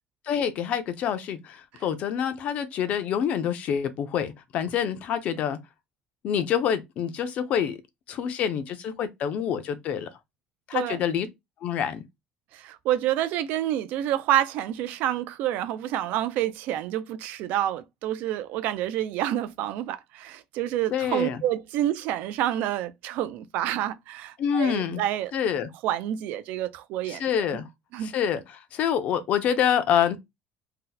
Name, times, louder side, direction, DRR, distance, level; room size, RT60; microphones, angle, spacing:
voice 1, 0.3-5.6 6.2-7.8 8.1-10.1 10.7-11.3 11.6-12.0 20.9-21.4 24.4-25.0 25.3-25.7 27.1-27.7 28.0-28.4 28.7-30.2, left 8 dB, 45° left, 0.5 m, -26 dB
voice 2, 12.5-25.3 25.8-27.2 27.9-28.1, right 12 dB, 70° right, 0.4 m, -28 dB
2.7 x 2.1 x 3.8 m
cardioid pair, 165°, 3 cm